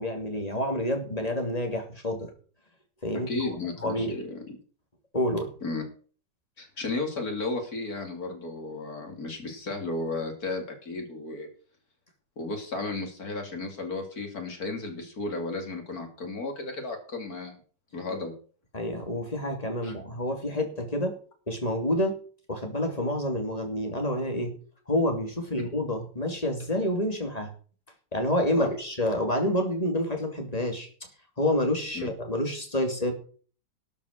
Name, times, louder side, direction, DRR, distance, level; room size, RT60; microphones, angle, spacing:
voice 1, 0.0-2.3 3.0-3.5 3.8-4.2 5.1-5.5 18.7-21.1 21.5-22.2 22.5-24.6 24.9-27.5 28.1-30.9 31.4-33.1, left 1 dB, 20° left, 3 dB, 2.8 m, -28 dB
voice 2, 3.3-4.6 5.6-5.8 6.6-11.5 12.4-17.6 17.9-18.3 19.8-19.9 28.6-28.7 31.9-32.1, left 3 dB, 55° left, 4 dB, 3.2 m, -34 dB
12.5 x 7.1 x 6.6 m, 0.41 s
omnidirectional pair, 1.9 m